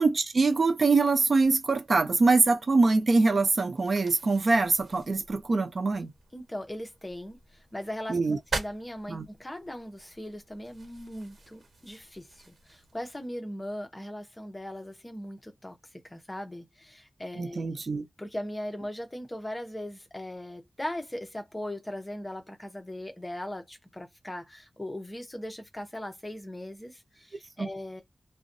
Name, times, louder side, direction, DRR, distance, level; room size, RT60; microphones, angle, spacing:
voice 1, 0.0-6.1 8.1-8.4 9.1-9.3 17.4-18.1 27.6-27.7, right 3 dB, 60° right, 0.5 m, -24 dB
sound 1, 1.4-13.3, right 3 dB, 75° right, 1.1 m, -44 dB
voice 2, 6.3-15.8 16.0-17.7 18.2-28.0, left 1 dB, 20° left, 0.7 m, -39 dB
2.4 x 2.2 x 2.6 m
wide cardioid pair, 85°, 0 cm